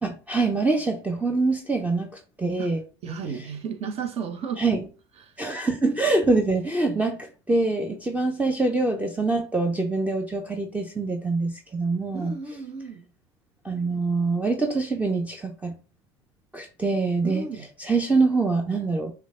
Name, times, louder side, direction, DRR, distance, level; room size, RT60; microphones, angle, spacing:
voice 1, 0.0-2.1 2.4-2.8 3.1-3.2 4.6-4.8 5.4-7.2 7.5-12.4 13.6-15.7 16.5-17.5 17.8-19.1, right 3 dB, 10° right, 0.7 m, -24 dB
voice 2, 3.0-4.6 5.2-5.3 12.1-13.0 17.2-17.7, right 6 dB, 40° right, 1.0 m, -33 dB
6.2 x 2.3 x 3.8 m
figure-of-eight pair, 70°, 16 cm